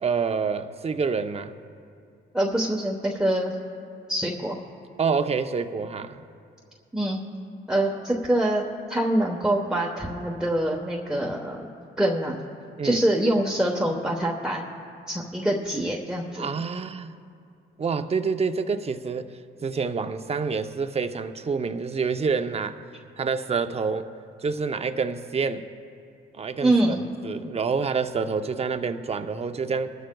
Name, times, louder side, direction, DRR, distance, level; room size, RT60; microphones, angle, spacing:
voice 1, 0.0-1.5 5.0-6.2 12.8-13.0 16.4-17.2 17.8-19.3 19.6-22.8 23.2-24.1 24.4-25.7 26.3-27.0 27.2-29.9, right 5 dB, 30° right, 8 dB, 0.7 m, -27 dB
voice 2, 2.3-3.5 4.1-4.6 6.9-7.2 7.7-8.6 8.9-11.7 12.0-12.4 12.8-14.6 15.1-16.5 26.6-27.0, right 1 dB, 5° right, -2 dB, 1.1 m, -24 dB
22.5 x 12.5 x 2.3 m, 2.4 s
cardioid pair, 90°, 20 cm